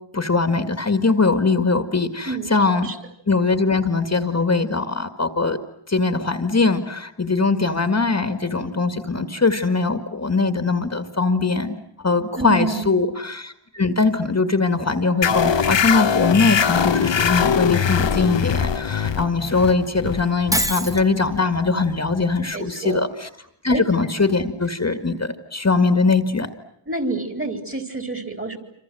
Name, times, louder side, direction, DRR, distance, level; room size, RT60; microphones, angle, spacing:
voice 1, 0.1-2.9 3.3-5.6 5.9-23.3 23.6-26.5, left 3 dB, 30° left, 8 dB, 2.2 m, -21 dB
voice 2, 12.4-13.1 22.5-23.1 23.7-23.8 26.9-28.6, right 3 dB, 25° right, 6 dB, 4.3 m, -28 dB
sound 1, 15.2-22.3, left 7 dB, 65° left, 1.3 m, -22 dB
Shatter, 20.5-21.1, equal, 5° right, 1.5 m, -23 dB
27.5 x 27.0 x 7.8 m, 0.74 s
wide cardioid pair, 105°, 48 cm